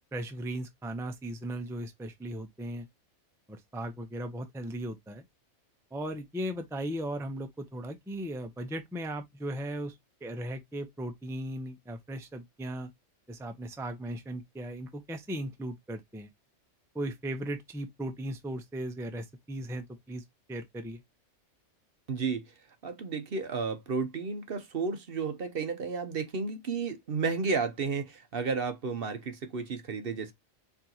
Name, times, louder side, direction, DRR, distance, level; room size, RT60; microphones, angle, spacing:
voice 1, 0.1-2.9 3.5-5.2 5.9-9.9 10.2-12.9 13.3-16.3 16.9-21.0, right 1 dB, 5° right, 0.5 m, -37 dB
voice 2, 22.1-22.4 22.8-30.3, right 4 dB, 55° right, 0.9 m, -32 dB
4.6 x 3.8 x 2.8 m
omnidirectional pair, 1.2 m